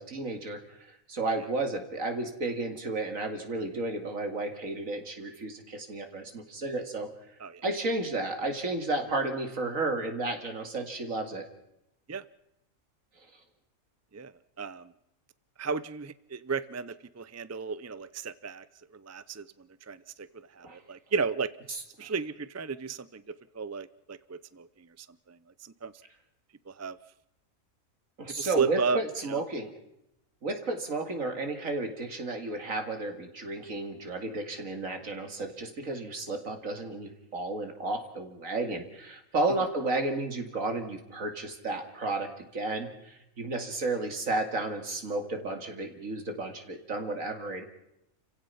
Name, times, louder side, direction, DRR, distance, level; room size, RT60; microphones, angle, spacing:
voice 1, 0.0-7.1 7.6-11.5 20.6-20.8 21.7-22.1 28.2-29.7 30.4-47.6, right 2 dB, 70° right, 5 dB, 2.8 m, -33 dB
voice 2, 14.6-14.9 15.6-18.6 18.9-19.4 19.9-20.3 20.6-21.5 22.0-23.2 23.5-24.7 25.0-25.4 25.6-25.9 26.7-27.0 28.4-29.0 29.3-29.4, right 5 dB, 20° right, 15 dB, 0.4 m, -33 dB
29.5 x 16.5 x 5.7 m, 0.84 s
omnidirectional pair, 1.4 m